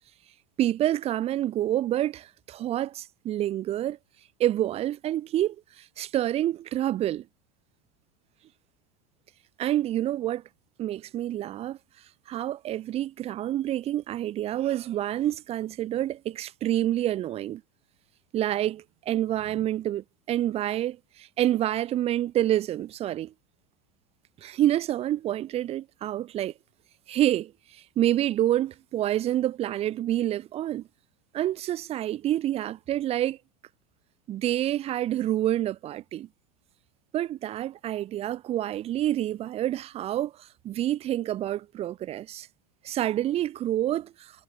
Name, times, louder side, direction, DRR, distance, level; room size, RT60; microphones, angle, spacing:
voice 1, 0.6-4.0 4.4-7.3 9.6-10.4 10.8-11.8 12.3-17.6 18.3-23.3 24.4-26.5 27.1-30.9 31.3-33.4 34.3-36.3 37.1-42.5 42.8-44.4, right 13 dB, 30° right, 2.0 m, -28 dB
supercardioid pair, 145°, 19 cm